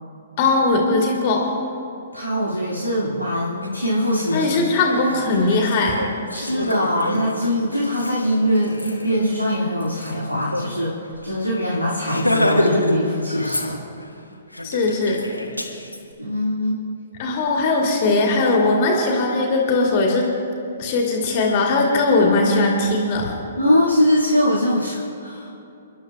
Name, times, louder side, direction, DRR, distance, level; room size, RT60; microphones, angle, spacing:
voice 1, 0.4-1.5 4.3-6.0 14.6-15.2 17.2-20.3 20.8-23.4, left 3 dB, 35° left, 0 dB, 2.2 m, -19 dB
voice 2, 2.1-4.6 6.3-11.0 11.2-13.8 16.2-16.8 23.6-25.5, equal, 85° right, -7 dB, 2.4 m, -22 dB
Laughter, 3.6-3.7 4.1-10.7 11.0-11.1 11.4-11.6 12.0-13.0 13.3-14.1 14.5-16.0, left 1 dB, 85° left, 1.6 m, -27 dB
29.5 x 11.5 x 2.4 m, 2.8 s
figure-of-eight pair, 120°, 0 cm